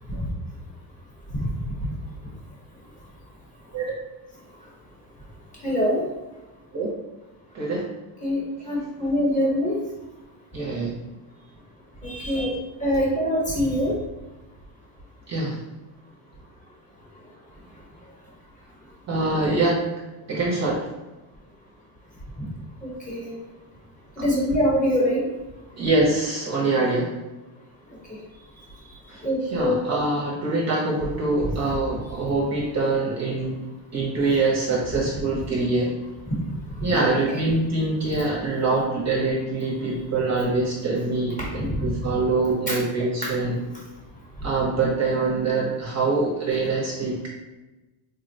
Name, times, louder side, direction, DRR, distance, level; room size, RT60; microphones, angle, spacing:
voice 1, 5.6-6.0 8.2-8.4 8.7-9.7 12.0-12.5 12.8-13.9 22.8-23.3 24.2-25.2 29.2-29.7 36.9-37.0 41.4-41.8 42.7-42.8 43.2-43.3, equal, 15° left, -4 dB, 0.8 m, -24 dB
voice 2, 7.5-7.9 10.5-10.9 12.3-12.5 15.3-15.6 19.1-19.8 20.3-20.9 25.8-27.1 29.1-33.6 33.9-35.9 36.8-43.6 44.4-47.3, right 3 dB, 35° right, -3 dB, 0.5 m, -24 dB
3.7 x 2.0 x 2.6 m, 1.1 s
cardioid pair, 135°, 49 cm